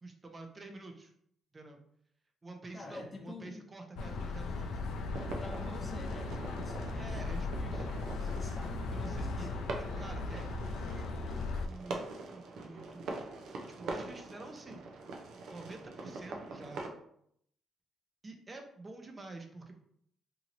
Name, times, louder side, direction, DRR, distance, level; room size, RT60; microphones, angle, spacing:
voice 1, 0.0-1.1 1.5-1.8 2.4-5.1 6.9-8.0 8.9-12.1 12.3-15.0 15.5-16.9 18.2-19.7, right 2 dB, 30° right, 4 dB, 0.5 m, -49 dB
voice 2, 2.7-3.6 5.2-8.8 9.1-9.7, left 2 dB, 30° left, 2 dB, 0.7 m, -48 dB
sound 1, 3.9-11.7, left 3 dB, 80° left, 0.3 m, -37 dB
sound 2, 5.1-16.9, right 3 dB, 80° right, 0.5 m, -44 dB
2.9 x 2.7 x 2.5 m, 0.70 s
cardioid pair, 90°, 0 cm